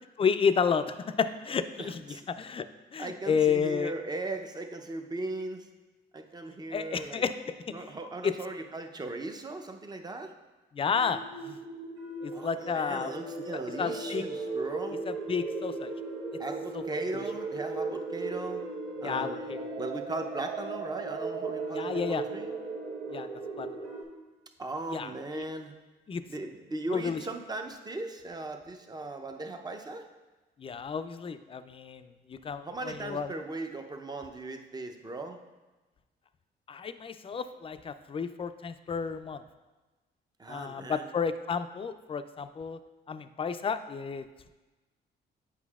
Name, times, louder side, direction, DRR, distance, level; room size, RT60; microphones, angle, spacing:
voice 1, 0.2-2.7 2.9-3.9 6.7-7.7 8.2-8.3 10.7-11.6 12.2-13.1 13.8-14.2 15.1-15.9 16.7-16.8 17.1-17.2 19.0-19.7 21.7-22.2 23.1-23.3 23.6-23.7 24.9-25.4 26.1-26.2 26.9-27.2 30.6-33.3 36.7-39.4 40.5-42.8 43.1-44.5, left 6 dB, 30° left, 11 dB, 0.4 m, -31 dB
voice 2, 1.8-2.2 3.0-5.7 6.1-7.2 7.7-10.3 12.3-15.0 16.4-18.6 19.0-22.5 24.6-25.7 26.3-30.1 32.6-35.4 40.4-41.1, right 2 dB, 20° right, 5 dB, 0.6 m, -38 dB
sound 1, 10.9-24.0, right 3 dB, 80° right, 1.0 m, -37 dB
8.2 x 5.5 x 2.4 m, 1.2 s
supercardioid pair, 70°, 20 cm